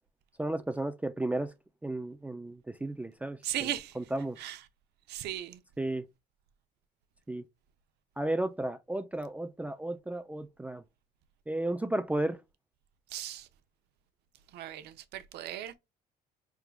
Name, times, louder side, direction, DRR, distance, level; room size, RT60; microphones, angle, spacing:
voice 1, 0.4-1.5 1.8-3.7 4.0-4.4 5.8-6.1 7.3-7.4 8.2-10.8 11.5-12.4, right 1 dB, 10° right, 0.4 m, -33 dB
voice 2, 3.4-3.9 4.4-4.6 5.1-5.6 13.1-13.5 14.5-15.7, right 12 dB, 75° right, 0.7 m, -37 dB
4.7 x 3.6 x 2.3 m
cardioid pair, 110°, 17 cm